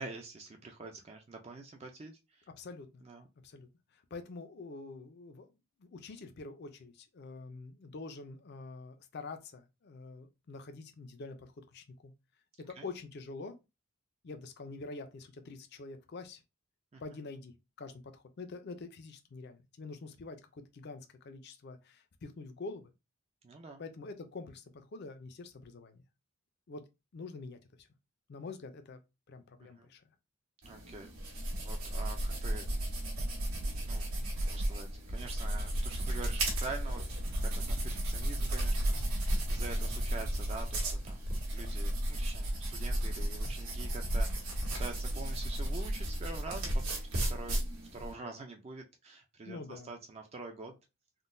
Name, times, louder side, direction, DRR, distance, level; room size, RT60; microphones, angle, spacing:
voice 1, 0.0-2.5 3.0-3.3 12.8-12.9 16.9-17.0 23.4-23.8 29.6-29.9 30.6-32.7 33.9-34.1 34.4-37.0 37.4-41.2 41.5-47.6 47.9-50.8, right 3 dB, 30° right, 0.3 m, -46 dB
voice 2, 2.6-3.0 3.4-5.5 5.8-12.1 12.7-13.6 14.2-16.4 17.0-22.9 23.8-26.0 26.7-26.8 27.1-27.9 28.3-29.0 29.3-30.0 30.7-30.8 49.5-49.9, left 3 dB, 50° left, 0.4 m, -46 dB
sound 1, 30.6-48.1, right 1 dB, 80° right, 1.4 m, -34 dB
3.6 x 2.1 x 2.5 m
head